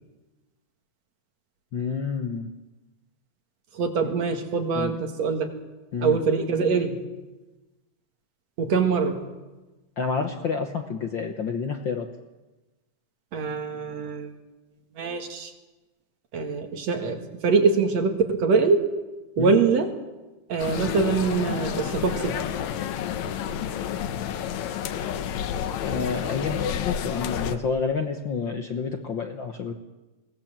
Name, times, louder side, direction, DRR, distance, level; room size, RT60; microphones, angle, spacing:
voice 1, 1.7-2.5 4.0-4.1 4.7-5.0 5.9-6.2 10.0-12.1 19.4-19.6 25.8-29.7, left 5 dB, 55° left, 5 dB, 1.4 m, -29 dB
voice 2, 3.7-5.5 6.0-7.0 8.6-9.2 13.3-14.3 15.0-15.5 16.3-18.9 19.4-19.9 20.5-22.4, right 4 dB, 60° right, 5 dB, 3.0 m, -24 dB
sound 1, 20.6-27.6, left 9 dB, 75° left, 2.2 m, -30 dB
22.0 x 18.5 x 7.5 m, 1.1 s
omnidirectional pair, 3.4 m